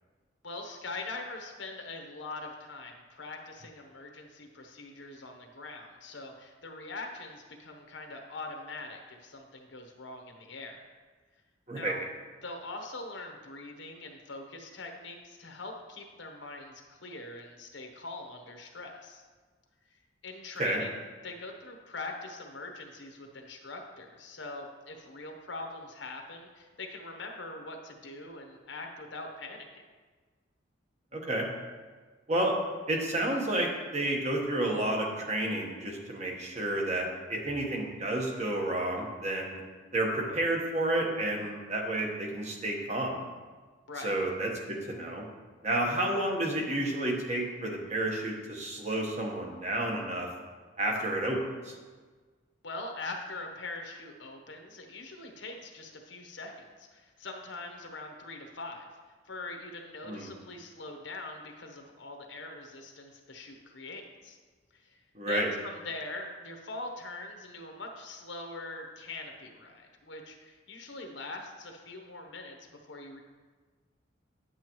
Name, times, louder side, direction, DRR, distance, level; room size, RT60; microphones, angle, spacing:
voice 1, 0.4-10.9 11.7-12.0 12.4-19.2 19.9-21.0 21.2-29.7 43.9-44.2 52.6-58.9 59.2-64.4 64.7-65.0 65.3-72.6 72.9-73.2, left 2 dB, 65° left, 3 dB, 1.0 m, -42 dB
voice 2, 31.1-31.5 32.3-32.6 32.9-39.6 39.9-43.2 44.0-45.2 45.6-50.3 50.8-51.4 51.6-51.7 60.0-60.3 65.1-65.5, right 1 dB, 35° right, 0 dB, 1.2 m, -30 dB
9.6 x 7.7 x 3.0 m, 1.4 s
head